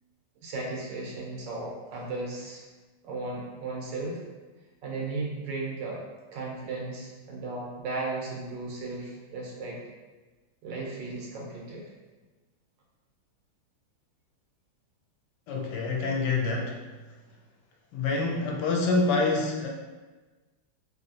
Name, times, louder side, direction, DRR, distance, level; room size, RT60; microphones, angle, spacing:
voice 1, 0.4-2.6 3.0-4.2 4.8-6.0 6.3-9.8 10.6-11.8, right 3 dB, 85° right, -2 dB, 1.4 m, -35 dB
voice 2, 15.5-16.9 17.9-19.7, left 3 dB, 75° left, 0 dB, 1.1 m, -26 dB
3.2 x 2.7 x 2.7 m, 1.2 s
omnidirectional pair, 1.9 m